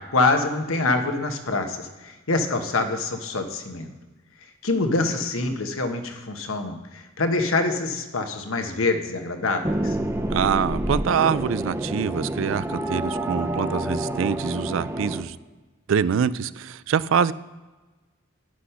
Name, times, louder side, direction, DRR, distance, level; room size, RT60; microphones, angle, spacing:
voice 1, 0.1-3.9 4.6-10.0, left 3 dB, 80° left, 6 dB, 1.0 m, -25 dB
sound 1, 9.6-15.2, right 1 dB, 10° right, 0.5 m, -28 dB
voice 2, 10.3-15.4 15.9-17.3, right 7 dB, 70° right, 17 dB, 0.3 m, -24 dB
9.9 x 6.1 x 5.7 m, 1.2 s
head